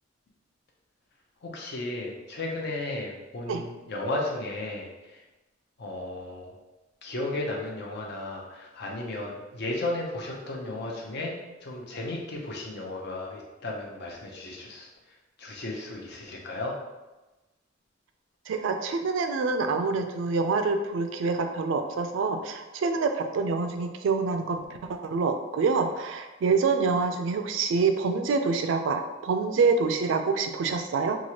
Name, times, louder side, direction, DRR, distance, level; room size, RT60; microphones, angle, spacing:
voice 1, 1.4-5.2 5.8-6.5 7.0-14.9 15.4-16.7, left 2 dB, 60° left, -1 dB, 0.6 m, -34 dB
voice 2, 18.5-24.6 24.9-31.2, right 4 dB, 75° right, 7 dB, 0.3 m, -26 dB
3.0 x 2.4 x 2.8 m, 1.1 s
head